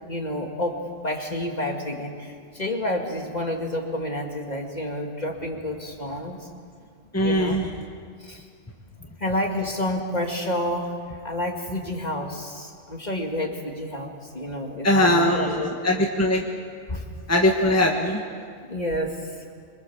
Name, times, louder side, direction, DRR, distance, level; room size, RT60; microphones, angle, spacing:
voice 1, 0.1-6.5 7.2-7.6 8.2-8.5 9.2-16.0 16.9-17.1 18.7-19.3, left 1 dB, 35° left, 1 dB, 2.5 m, -29 dB
voice 2, 7.1-7.7 14.8-16.4 17.3-18.2, left 1 dB, 15° left, 0 dB, 1.6 m, -21 dB
26.0 x 24.0 x 7.4 m, 2.1 s
omnidirectional pair, 1.2 m